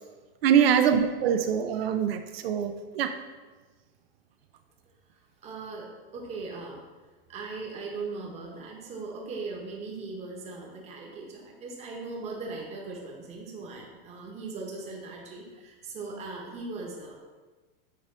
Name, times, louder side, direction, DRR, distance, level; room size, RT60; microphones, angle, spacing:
voice 1, 0.4-3.1, right 8 dB, 85° right, 7 dB, 0.6 m, -24 dB
voice 2, 5.4-6.8 7.3-17.2, right 3 dB, 20° right, 0 dB, 1.1 m, -39 dB
7.6 x 3.6 x 3.8 m, 1.3 s
supercardioid pair, 150°, 29 cm